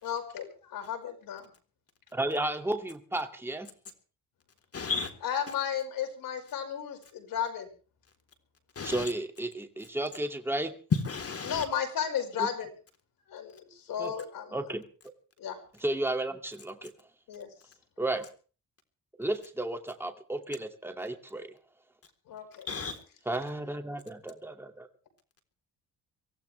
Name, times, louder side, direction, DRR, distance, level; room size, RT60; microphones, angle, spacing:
voice 1, 0.0-1.5 5.2-7.7 11.4-12.7 13.3-14.7 15.4-15.6 17.3-17.5 22.3-22.7, left 8 dB, 85° left, 5.6 m, -34 dB
voice 2, 2.1-3.7 8.8-10.7 12.4-12.5 14.0-14.1 14.5-14.8 15.8-16.9 18.0-18.2 19.2-21.5 23.3-24.9, right 1 dB, 5° right, 2.4 m, -33 dB
voice 3, 4.7-5.1 8.8-9.1 10.9-11.6 22.7-23.0, left 5 dB, 45° left, 3.7 m, -31 dB
24.5 x 16.5 x 3.4 m
cardioid pair, 105°, 33 cm